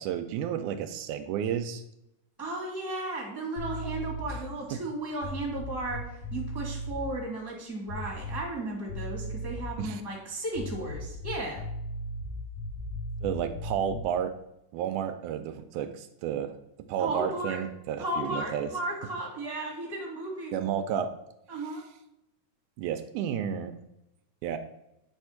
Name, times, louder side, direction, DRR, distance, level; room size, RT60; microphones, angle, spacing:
voice 1, 0.0-1.8 9.8-10.0 13.2-14.3 14.7-16.6 16.9-18.7 20.5-21.1 22.8-23.8 24.4-24.6, right 9 dB, 80° right, 8 dB, 2.0 m, -31 dB
voice 2, 2.4-11.6 17.0-17.6 18.0-20.6 21.5-21.8, right 2 dB, 10° left, -3 dB, 1.1 m, -35 dB
sound 1, 3.6-4.5 5.2-7.1 7.9-8.6 8.9-9.8 10.5-14.2, equal, 55° left, 2.8 m, -37 dB
8.7 x 3.5 x 5.7 m, 0.83 s
omnidirectional pair, 3.6 m